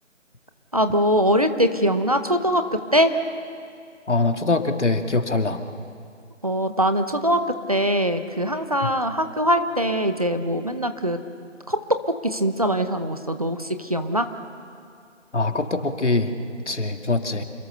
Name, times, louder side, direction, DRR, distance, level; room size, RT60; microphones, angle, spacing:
voice 1, 0.7-3.1 6.4-7.4 7.7-11.2 11.7-12.0 12.2-14.3, equal, 30° right, 8 dB, 0.9 m, -22 dB
voice 2, 4.1-5.6 15.3-16.3 16.7-17.4, left 3 dB, 65° left, 6 dB, 2.3 m, -23 dB
27.0 x 22.0 x 6.7 m, 2.3 s
figure-of-eight pair, 170°, 38 cm